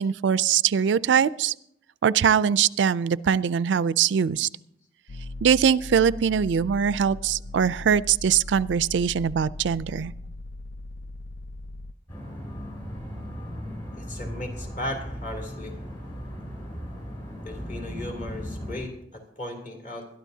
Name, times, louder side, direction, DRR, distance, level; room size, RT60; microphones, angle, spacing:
voice 1, 0.0-1.5 2.0-4.5 5.4-10.1, right 7 dB, 90° right, 17 dB, 0.4 m, -22 dB
sound 1, 5.1-11.9, left 2 dB, 80° left, 0.5 m, -39 dB
sound 2, 12.1-18.8, equal, 30° left, 6.9 m, -37 dB
voice 2, 14.0-15.8 17.4-20.1, left 1 dB, 45° left, 0 dB, 3.0 m, -36 dB
21.5 x 12.5 x 2.8 m, 0.74 s
head